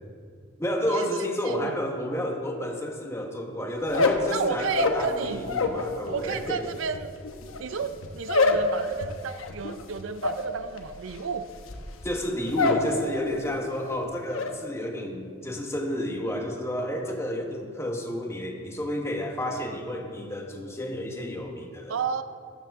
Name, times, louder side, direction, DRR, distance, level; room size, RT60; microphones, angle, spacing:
voice 1, 0.6-6.6 12.0-22.0, left 1 dB, 15° left, 2 dB, 1.1 m, -31 dB
sound 1, 3.8-5.9 6.1-12.9 13.2-13.7 14.0-14.5, left 3 dB, 90° left, 0.9 m, -27 dB
voice 2, 4.3-5.5 6.0-7.1 7.6-11.5 21.9-22.2, right 6 dB, 70° right, 11 dB, 0.5 m, -32 dB
12.5 x 11.5 x 3.6 m, 2.1 s
head